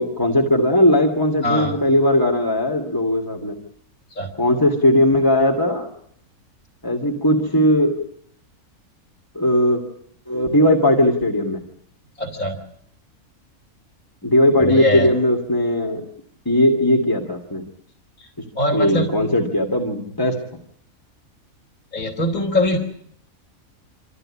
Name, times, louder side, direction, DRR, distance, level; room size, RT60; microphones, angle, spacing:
voice 1, 0.0-3.6 4.4-5.9 6.8-7.9 9.3-9.8 10.3-11.6 14.2-16.0 16.5-17.6 18.7-20.4, left 1 dB, 15° left, 0 dB, 2.6 m, -18 dB
voice 2, 1.4-1.8 4.2-4.3 12.2-12.6 14.6-15.1 18.6-19.3 21.9-22.8, left 1 dB, 85° left, 0 dB, 3.6 m, -22 dB
27.0 x 14.5 x 9.9 m, 0.68 s
omnidirectional pair, 1.5 m